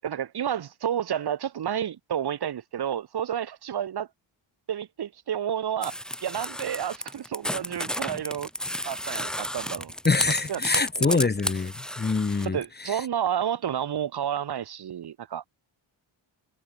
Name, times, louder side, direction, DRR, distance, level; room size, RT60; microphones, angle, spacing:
voice 1, 0.0-4.1 4.7-8.5 8.8-9.9 10.5-11.3 12.4-15.4, right 9 dB, 50° right, 1.4 m, -30 dB
sound 1, 5.8-12.5, equal, ahead, 0.6 m, -32 dB
voice 2, 10.0-12.6 12.8-13.0, left 4 dB, 20° left, 1.1 m, -25 dB
wide cardioid pair, 170°, 49 cm